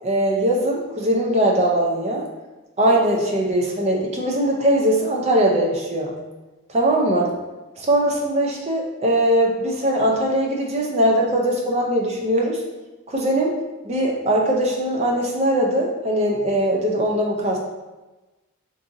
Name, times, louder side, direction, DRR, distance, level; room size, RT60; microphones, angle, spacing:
voice 1, 0.0-2.2 2.8-6.1 6.7-7.4 7.8-12.6 13.1-13.5 13.8-17.6, right 1 dB, 30° right, -1 dB, 0.4 m, -20 dB
2.6 x 2.5 x 3.8 m, 1.1 s
head